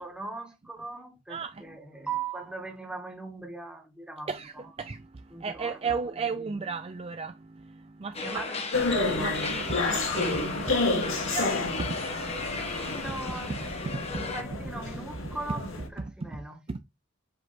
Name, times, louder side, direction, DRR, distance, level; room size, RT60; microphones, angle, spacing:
voice 1, 0.0-4.3 4.5-4.7 5.3-6.0 6.3-6.5 8.2-8.6 12.7-15.7 16.0-16.6, right 4 dB, 5° right, 1.7 m, -39 dB
voice 2, 1.3-1.8 4.3-8.4 9.2-12.9 13.5-13.7 13.9-14.3 16.2-16.4 16.7-16.8, right 4 dB, 30° right, 0.4 m, -35 dB
sound 1, 8.1-14.4, left 4 dB, 30° left, 1.2 m, -36 dB
sound 2, 8.7-15.9, left 3 dB, 80° left, 1.8 m, -30 dB
7.7 x 3.3 x 4.2 m
head